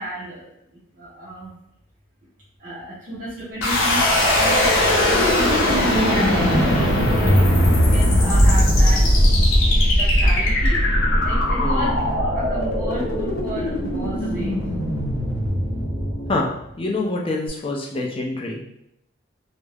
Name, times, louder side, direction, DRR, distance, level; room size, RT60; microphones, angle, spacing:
voice 1, 0.0-1.6 2.6-7.5 7.9-9.1 10.0-10.8 11.2-14.7, equal, 40° right, -8 dB, 0.5 m, -32 dB
sound 1, 3.6-16.5, left 1 dB, 80° left, 0.6 m, -19 dB
sound 2, 10.1-16.4, equal, ahead, 0.9 m, -33 dB
voice 2, 11.6-12.0 16.3-16.5 16.8-18.6, left 2 dB, 25° left, -1 dB, 0.4 m, -26 dB
2.2 x 2.0 x 3.2 m, 0.81 s
head